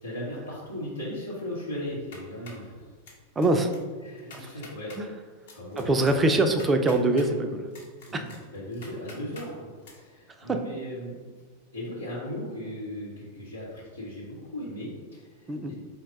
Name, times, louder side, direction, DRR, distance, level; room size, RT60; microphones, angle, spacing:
voice 1, 0.0-2.9 4.0-5.0 5.5-6.4 8.1-11.3 11.7-15.7, equal, 85° left, -10 dB, 0.8 m, -37 dB
sound 1, 1.9-2.7 3.1-3.5 3.7-3.8 4.2-5.0 5.5-7.3 7.7-9.5 9.8-9.9, left 3 dB, 60° left, 0.9 m, -47 dB
voice 2, 3.4-3.7 4.3-4.5 5.0-5.1 5.8-7.7 8.1-8.2 10.4-10.6 15.5-15.7, right 2 dB, 15° right, 6 dB, 0.4 m, -24 dB
4.4 x 2.2 x 3.9 m, 1.5 s
figure-of-eight pair, 90°, 0 cm